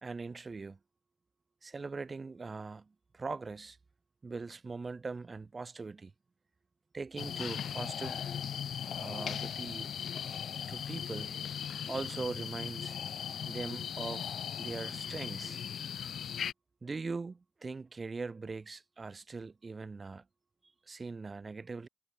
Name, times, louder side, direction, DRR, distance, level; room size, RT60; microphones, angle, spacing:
voice 1, 0.0-0.8 1.6-3.8 4.2-6.1 6.9-8.2 9.0-9.9 10.7-11.4 11.9-13.0 13.5-15.6 16.8-20.2 20.9-21.9, right 4 dB, 30° right, 1.2 m, -41 dB
sound 1, 7.2-16.5, left 8 dB, 70° left, 0.6 m, -38 dB
wide cardioid pair, 140°, 0 cm